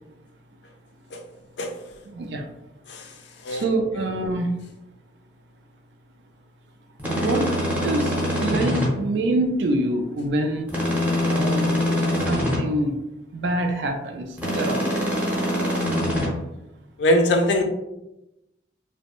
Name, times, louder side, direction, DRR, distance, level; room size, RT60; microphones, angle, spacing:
voice 1, 2.1-2.4 3.5-4.5 7.2-7.5 7.8-8.1 8.4-10.7 11.3-11.9 12.3-12.9 13.3-14.9, right 1 dB, 80° right, 3 dB, 0.3 m, -25 dB
sound 1, 7.0-8.9 10.7-12.6 14.4-16.3, equal, 10° right, 0.6 m, -24 dB
voice 2, 17.0-17.6, left 1 dB, 80° left, 4 dB, 0.4 m, -21 dB
2.5 x 2.1 x 2.9 m, 0.93 s
head